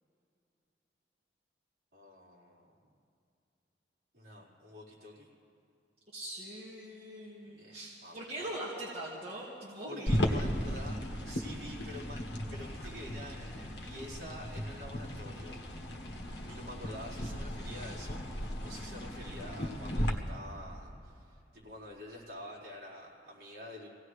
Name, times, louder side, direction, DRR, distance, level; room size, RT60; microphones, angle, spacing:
voice 1, 1.9-2.8 4.1-5.3 7.4-8.5 9.9-15.6 16.5-23.9, equal, 55° right, -7 dB, 4.4 m, -48 dB
voice 2, 6.1-10.4 16.2-16.7, right 1 dB, 35° right, -8 dB, 2.2 m, -42 dB
sound 1, 10.1-20.1, equal, 70° left, 1.4 m, -36 dB
26.0 x 17.0 x 3.3 m, 2.6 s
head